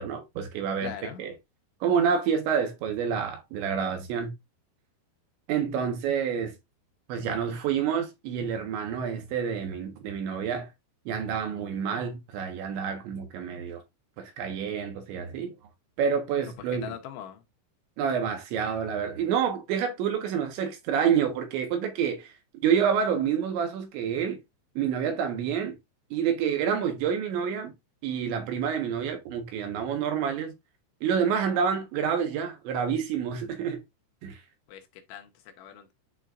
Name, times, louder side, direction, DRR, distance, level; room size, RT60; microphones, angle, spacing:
voice 1, 0.0-0.9 1.2-1.3 1.8-4.3 5.5-6.5 7.1-10.7 11.1-13.8 14.2-15.6 16.0-16.9 18.0-22.3 22.6-24.4 24.8-25.8 26.1-27.7 28.0-30.5 31.0-33.8 34.2-34.4, right 7 dB, 70° right, 3.4 m, -28 dB
voice 2, 0.8-1.2 16.4-16.5 16.8-17.4 34.7-35.9, left 10 dB, 75° left, 3.0 m, -41 dB
11.0 x 4.4 x 2.5 m
omnidirectional pair, 5.8 m